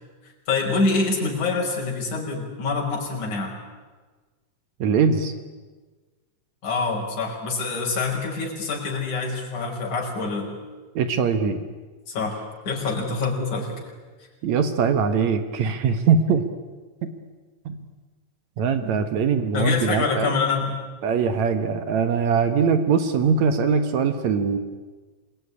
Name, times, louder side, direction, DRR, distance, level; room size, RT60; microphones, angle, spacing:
voice 1, 0.5-3.5 6.6-10.5 12.1-13.7 18.8-18.9 19.5-20.7, left 4 dB, 80° left, -1 dB, 6.9 m, -25 dB
voice 2, 4.8-5.3 10.9-11.6 14.4-16.4 17.0-17.1 17.7-17.8 18.6-20.3 21.0-24.6, right 6 dB, 70° right, 9 dB, 2.6 m, -22 dB
27.0 x 22.0 x 9.9 m, 1.3 s
omnidirectional pair, 3.4 m